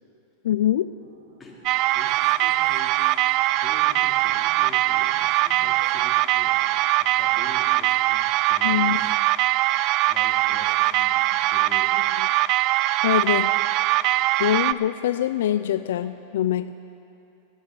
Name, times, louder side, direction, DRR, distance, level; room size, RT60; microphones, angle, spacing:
voice 1, 0.4-0.9 8.6-9.0 13.0-13.5 14.4-16.7, left 11 dB, 75° left, 12 dB, 0.4 m, -23 dB
sound 1, 1.0-7.5, right 6 dB, 70° right, 1.4 m, -48 dB
sound 2, 1.7-14.7, right 16 dB, 50° right, 0.3 m, -22 dB
voice 2, 1.9-3.0 3.4-6.6 7.0-9.2 10.1-11.9, left 2 dB, 15° left, -3 dB, 3.0 m, -45 dB
14.5 x 9.8 x 7.6 m, 2.7 s
hypercardioid pair, 120°, 0 cm